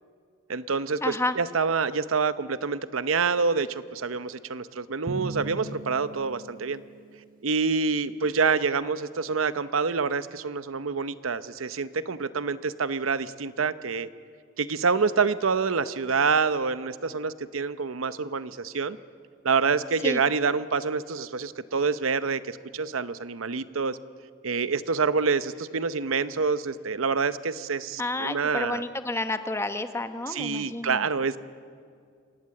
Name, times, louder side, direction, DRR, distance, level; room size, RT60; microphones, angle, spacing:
voice 1, 0.5-6.8 7.4-14.1 14.6-19.0 19.4-24.0 24.4-28.8 30.3-31.4, right 5 dB, 85° right, 14 dB, 0.8 m, -27 dB
voice 2, 1.0-1.4 20.0-20.2 28.0-31.1, left 2 dB, 15° left, 9 dB, 0.9 m, -30 dB
Drum, 5.1-7.2, right 2 dB, 45° right, 1.3 m, -38 dB
26.0 x 18.5 x 7.7 m, 2.2 s
head